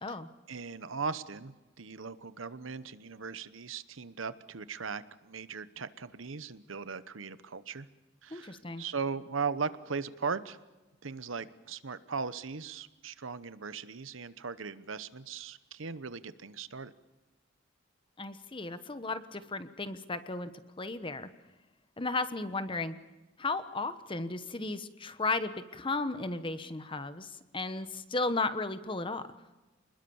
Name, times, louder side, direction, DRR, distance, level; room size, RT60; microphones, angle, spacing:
voice 1, 0.5-7.9 8.2-10.6 11.0-16.9, right 5 dB, 75° right, 14 dB, 1.0 m, -38 dB
voice 2, 8.3-8.8 18.2-20.5 20.8-21.3 22.0-22.9 23.4-29.2, left 3 dB, 25° left, 12 dB, 1.1 m, -34 dB
28.0 x 20.5 x 7.2 m, 1.1 s
head